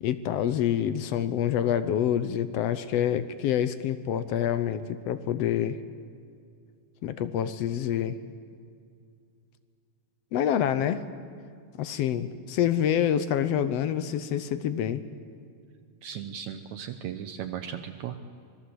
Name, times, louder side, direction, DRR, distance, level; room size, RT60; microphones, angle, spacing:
voice 1, 0.0-5.8 7.0-8.2 10.3-11.1 11.8-15.0, left 10 dB, 70° left, 13 dB, 1.6 m, -27 dB
voice 2, 16.0-18.2, right 9 dB, 70° right, 7 dB, 2.1 m, -36 dB
25.5 x 20.5 x 7.9 m, 2.2 s
omnidirectional pair, 3.6 m